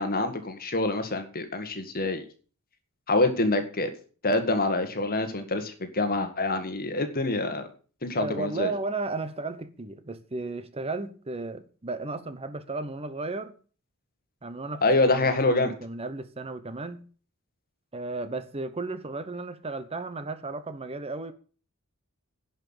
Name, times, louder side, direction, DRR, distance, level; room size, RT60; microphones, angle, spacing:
voice 1, 0.0-2.2 3.1-3.9 4.2-7.7 8.0-8.7 14.8-15.7, left 2 dB, 45° left, 1.8 m, -26 dB
voice 2, 8.2-13.5 14.4-17.1 17.9-21.3, right 3 dB, 25° right, 0.8 m, -34 dB
11.0 x 5.7 x 8.8 m
head